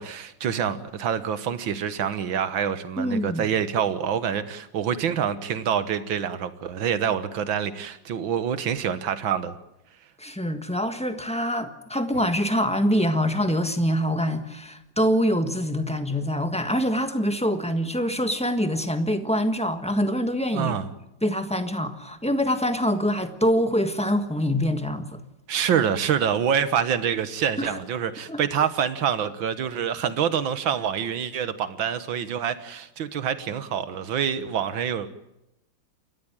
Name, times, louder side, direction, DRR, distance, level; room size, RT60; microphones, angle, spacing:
voice 1, 0.0-9.6 20.5-20.9 25.5-35.1, right 8 dB, 75° right, 2.0 m, -26 dB
voice 2, 3.0-3.5 10.2-20.7 21.2-25.2 27.6-27.8 28.3-28.4, equal, 5° left, 1.2 m, -25 dB
29.0 x 14.0 x 8.9 m
omnidirectional pair, 2.2 m